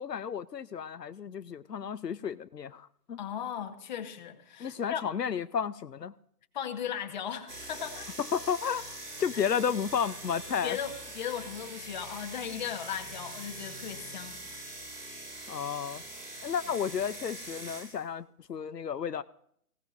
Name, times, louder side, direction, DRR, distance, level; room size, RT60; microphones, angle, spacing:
voice 1, 0.0-3.2 4.6-6.1 8.2-10.8 15.5-16.0 16.4-19.2, left 7 dB, 85° left, 12 dB, 0.8 m, -32 dB
voice 2, 3.2-5.0 6.5-8.1 10.5-14.4, left 9 dB, 30° left, 5 dB, 1.4 m, -37 dB
sound 1, 7.5-18.0, right 1 dB, 80° right, 7.7 m, -43 dB
19.5 x 17.0 x 2.6 m, 0.66 s
figure-of-eight pair, 150°, 48 cm